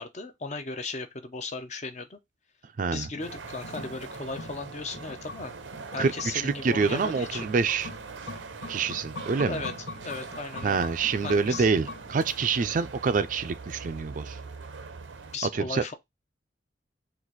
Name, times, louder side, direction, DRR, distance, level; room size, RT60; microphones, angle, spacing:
voice 1, 0.0-2.2 2.9-5.5 5.9-7.5 9.5-9.7 10.0-10.9 11.2-11.7 15.3-15.9, left 3 dB, 40° left, 0.6 m, -36 dB
voice 2, 2.8-3.1 6.0-7.9 8.7-9.6 10.6-14.4 15.5-15.8, right 5 dB, 45° right, 0.4 m, -26 dB
sound 1, 3.0-12.5 12.8-12.9, left 3 dB, 80° left, 1.0 m, -43 dB
sound 2, 3.2-15.4, right 4 dB, 85° right, 0.6 m, -42 dB
4.0 x 2.5 x 4.5 m
head